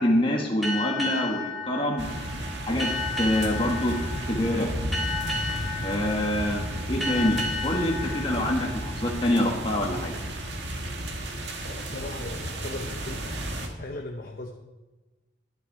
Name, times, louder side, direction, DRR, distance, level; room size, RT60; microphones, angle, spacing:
voice 1, 0.0-2.1 2.7-2.9 3.2-3.9 4.3-4.7 5.8-6.6 6.9-10.1, left 1 dB, 30° left, -1 dB, 1.6 m, -25 dB
sound 1, 0.6-9.8, left 2 dB, ahead, 2.9 m, -34 dB
sound 2, 2.0-13.7, right 1 dB, 65° right, 1.8 m, -33 dB
voice 2, 11.6-13.2 13.8-14.5, left 2 dB, 45° left, 3 dB, 0.9 m, -37 dB
11.5 x 11.5 x 4.8 m, 1.2 s
head